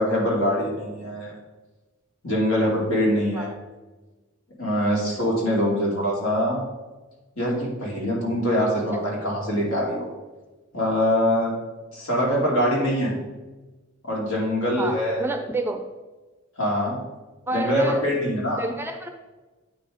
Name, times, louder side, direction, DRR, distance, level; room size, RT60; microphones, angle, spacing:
voice 1, 0.0-1.3 2.2-3.5 4.6-6.6 7.4-10.1 10.7-11.5 11.9-13.2 14.0-15.2 16.6-17.0 17.5-18.6, equal, 75° left, -4 dB, 2.7 m, -23 dB
voice 2, 14.8-15.8 17.5-18.1 18.6-19.1, right 2 dB, 10° right, 5 dB, 0.5 m, -29 dB
9.0 x 4.3 x 5.0 m, 1.2 s
head